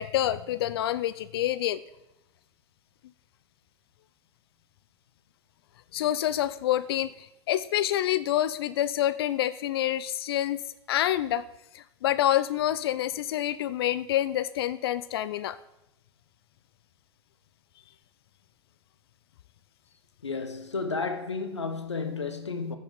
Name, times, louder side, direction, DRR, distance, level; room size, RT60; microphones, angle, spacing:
voice 1, 0.0-1.8 5.9-7.1 7.5-10.6 10.9-11.4 11.7-15.6, left 12 dB, 60° left, 0.4 m, -27 dB
voice 2, 20.2-22.8, left 4 dB, 85° left, 0.9 m, -32 dB
14.5 x 5.5 x 3.8 m
figure-of-eight pair, 90°, 14 cm